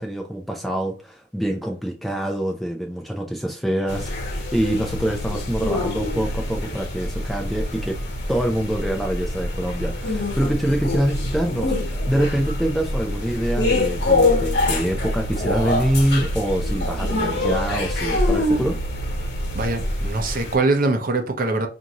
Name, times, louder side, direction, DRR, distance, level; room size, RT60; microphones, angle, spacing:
voice 1, 0.0-8.0 8.3-18.8, right 1 dB, ahead, 0.4 m, -25 dB
sound 1, 3.9-20.6, left 2 dB, 60° left, 1.1 m, -26 dB
sound 2, 5.2-19.9, right 1 dB, 75° left, 0.8 m, -32 dB
voice 2, 19.5-21.7, right 2 dB, 50° right, 0.6 m, -22 dB
4.8 x 2.6 x 2.9 m
head